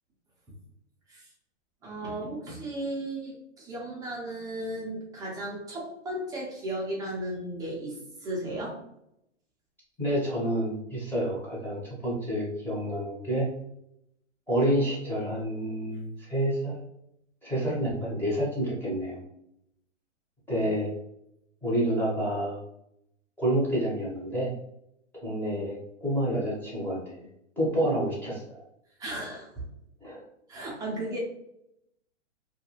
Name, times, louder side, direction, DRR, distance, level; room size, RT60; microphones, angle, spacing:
voice 1, 1.8-8.8 20.6-20.7 29.0-29.7 30.5-31.2, right 1 dB, 10° right, -3 dB, 0.5 m, -35 dB
voice 2, 10.0-13.5 14.5-16.8 17.4-19.2 20.5-20.9 21.6-22.6 23.4-24.5 25.1-27.3 27.6-28.4 30.0-30.2, right 1 dB, 5° left, -7 dB, 0.9 m, -28 dB
2.4 x 2.2 x 2.9 m, 0.78 s
hypercardioid pair, 135°, 36 cm